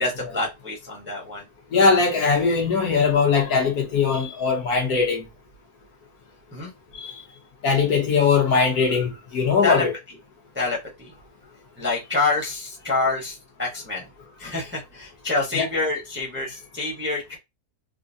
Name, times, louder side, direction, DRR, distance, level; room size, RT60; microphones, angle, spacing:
voice 1, 0.0-1.5 6.5-6.7 9.6-10.2 10.5-11.2 11.8-14.0 14.4-17.4, left 3 dB, 10° right, 0.7 m, -27 dB
voice 2, 1.7-5.3 6.9-7.1 7.6-9.9 15.5-15.7, left 5 dB, 65° left, 1.5 m, -20 dB
3.8 x 2.1 x 2.6 m
omnidirectional pair, 1.7 m